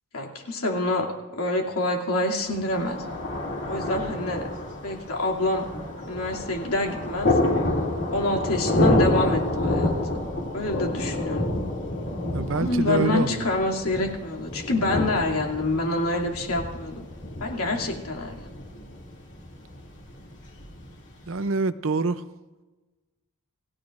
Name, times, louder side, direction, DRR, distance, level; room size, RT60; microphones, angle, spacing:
voice 1, 0.1-1.1 1.3-3.0 3.7-4.5 4.8-5.6 6.1-7.3 8.1-10.3 10.5-11.5 12.5-17.0 17.4-18.5, left 2 dB, 80° left, 2.7 m, -27 dB
Thunder, 2.5-21.4, left 1 dB, 55° left, 2.6 m, -29 dB
voice 2, 12.3-13.5 21.3-22.2, right 3 dB, 60° right, 0.6 m, -26 dB
28.0 x 16.5 x 2.6 m
head